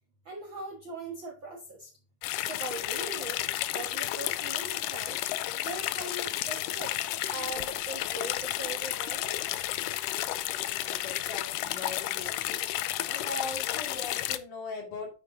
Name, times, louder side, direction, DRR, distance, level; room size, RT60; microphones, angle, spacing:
voice 1, 0.2-1.9 2.4-3.4 3.7-5.2 5.5-6.9 7.3-9.4, right 3 dB, 50° right, -1 dB, 1.5 m, -40 dB
sound 1, 2.2-14.4, left 14 dB, 80° left, 2.0 m, -32 dB
voice 2, 10.6-12.6 12.8-15.1, left 3 dB, 60° left, 0 dB, 3.9 m, -40 dB
9.6 x 7.5 x 2.7 m, 0.37 s
omnidirectional pair, 4.1 m